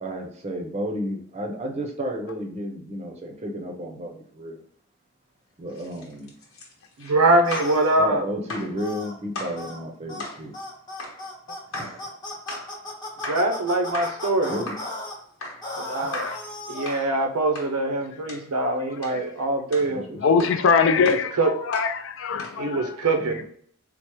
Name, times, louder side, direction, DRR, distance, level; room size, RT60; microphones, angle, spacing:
voice 1, 0.0-4.6 5.6-6.3 8.0-10.5 11.7-12.0 14.5-14.8 19.8-20.5 23.2-23.4, equal, 30° right, 0.5 m, -32 dB
sound 1, 5.7-7.8 8.5-8.8 9.4-9.6 10.2-10.4 11.0-11.2 11.7-12.0 12.5-12.7 13.2-13.5 13.9-14.3 14.7-14.9 15.4-15.7 16.1-16.5 16.9-17.1 17.6-17.8 18.3-18.5 19.0-19.2 19.7-19.9 20.4-20.6 21.1-21.3 21.7-22.0 22.4-22.6, left 2 dB, 75° left, 1.0 m, -36 dB
voice 2, 7.0-8.3 13.3-14.6 15.8-16.2 16.7-20.1 21.0-21.5 22.6-23.4, right 2 dB, 85° right, 0.6 m, -23 dB
sound 2, 7.4-8.0 8.8-9.1 9.6-9.8 10.1-10.3 10.5-15.1 15.6-17.1, left 1 dB, 20° left, 0.7 m, -36 dB
voice 3, 20.2-21.3 21.7-22.9, left 5 dB, 55° left, 0.3 m, -22 dB
4.5 x 2.0 x 2.9 m
head